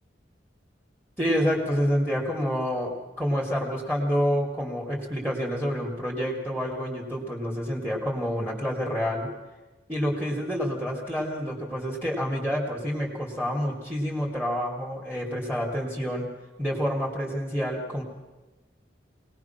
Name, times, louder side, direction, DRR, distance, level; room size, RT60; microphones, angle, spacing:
voice 1, 1.2-9.3 9.9-16.3 16.6-18.0, equal, 5° right, -1 dB, 2.8 m, -28 dB
24.5 x 19.0 x 6.0 m, 1.2 s
head